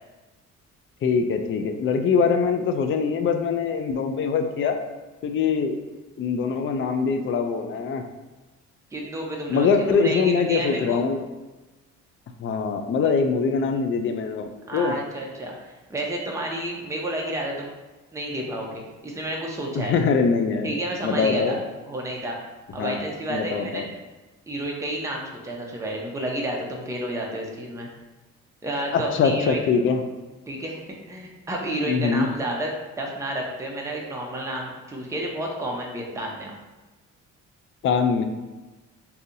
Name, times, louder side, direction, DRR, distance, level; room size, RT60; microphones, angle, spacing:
voice 1, 1.0-4.8 5.2-5.7 6.2-8.0 9.5-11.2 12.4-14.9 19.8-20.7 21.0-21.6 22.7-23.0 23.3-23.9 28.9-30.0 31.9-32.3 37.8-38.2, left 5 dB, 45° left, 6 dB, 0.4 m, -23 dB
voice 2, 8.9-11.0 14.7-17.7 18.1-19.9 20.6-21.6 21.9-22.4 22.7-23.8 24.5-27.9 28.6-29.6 30.5-30.8 31.1-36.5, right 1 dB, 10° right, -2 dB, 0.6 m, -30 dB
3.9 x 2.8 x 2.6 m, 1.2 s
cardioid pair, 90°, 30 cm